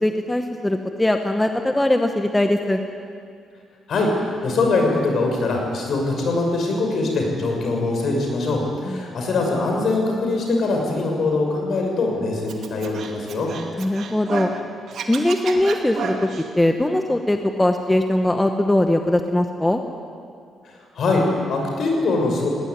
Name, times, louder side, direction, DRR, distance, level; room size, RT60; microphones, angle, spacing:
voice 1, 0.0-2.8 8.8-9.1 13.8-14.5 15.1-19.8, left 1 dB, 10° left, 5 dB, 1.1 m, -21 dB
voice 2, 4.4-13.5 20.6-22.5, left 3 dB, 55° left, 1 dB, 6.5 m, -22 dB
Scratching (performance technique), 12.5-14.6 14.9-16.5, right 5 dB, 60° right, 2.4 m, -31 dB
20.0 x 18.5 x 9.7 m, 2.3 s
cardioid pair, 125°, 0 cm